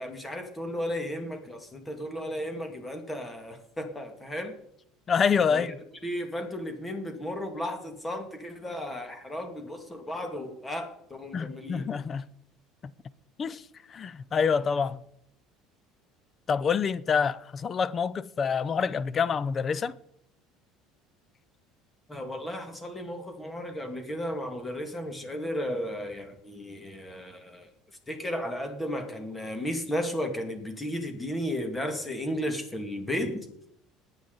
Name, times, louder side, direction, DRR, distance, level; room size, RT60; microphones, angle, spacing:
voice 1, 0.0-4.6 5.5-5.7 6.0-11.9 22.1-27.7 28.1-33.4, equal, 15° left, 2.0 m, -34 dB
voice 2, 5.1-5.8 11.3-12.3 13.4-15.0 16.5-19.9, left 6 dB, 30° left, 0.4 m, -27 dB
19.5 x 8.8 x 3.9 m
cardioid pair, 130°, 0 cm